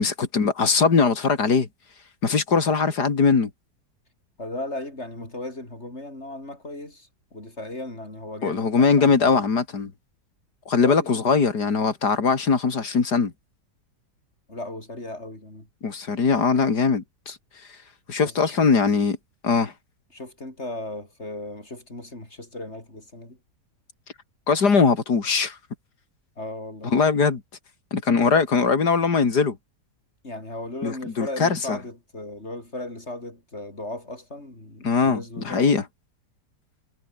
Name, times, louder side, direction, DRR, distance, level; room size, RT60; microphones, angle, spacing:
voice 1, 0.0-1.7 2.2-3.5 8.4-9.9 10.7-13.3 15.8-17.4 18.1-19.2 19.4-19.7 24.5-25.6 26.9-27.4 27.9-29.6 30.8-31.8 34.8-35.8, left 5 dB, 70° left, 3.2 m, -21 dB
voice 2, 4.4-9.4 10.8-11.4 14.5-15.7 18.2-18.6 20.1-23.4 26.4-26.9 30.2-35.8, left 2 dB, 40° left, 7.1 m, -36 dB
omnidirectional pair, 1.8 m